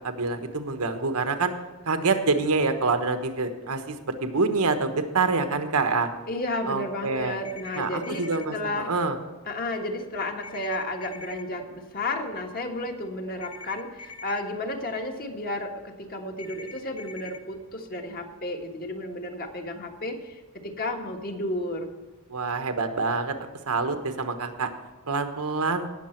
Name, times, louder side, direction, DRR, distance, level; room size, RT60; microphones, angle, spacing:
voice 1, 0.0-1.5 1.8-6.1 6.7-7.4 7.8-9.2 22.3-23.3 23.7-24.7 25.1-25.9, right 3 dB, 90° right, 7 dB, 1.2 m, -26 dB
voice 2, 6.3-8.9 9.5-21.9, left 2 dB, 40° left, 3 dB, 1.5 m, -32 dB
sound 1, 7.4-8.4 10.4-11.4 13.4-14.4 16.4-17.4, left 3 dB, 70° left, 1.1 m, -43 dB
18.0 x 6.8 x 4.5 m, 1.3 s
head